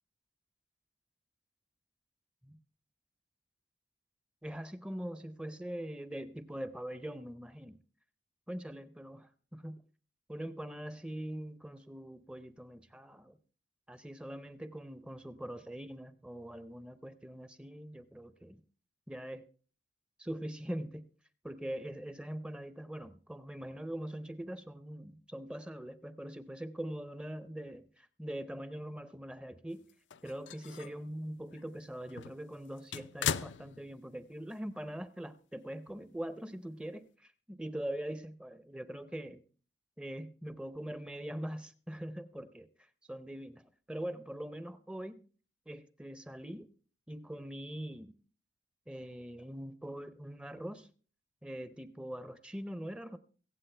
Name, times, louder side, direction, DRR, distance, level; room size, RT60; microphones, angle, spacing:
voice 1, 4.4-7.8 8.5-9.8 10.3-13.4 13.9-18.6 19.1-19.4 20.2-21.1 21.4-29.9 30.2-39.4 40.0-42.7 43.1-43.6 43.9-45.2 45.7-46.7 47.1-48.1 48.9-50.9 51.4-53.2, right 1 dB, 5° right, 13 dB, 0.6 m, -42 dB
sound 1, 29.9-31.0 31.5-31.6 32.1-34.3 34.5-34.6 35.9-36.0, left 8 dB, 75° left, 0.5 m, -39 dB
23.5 x 8.3 x 3.3 m, 0.39 s
head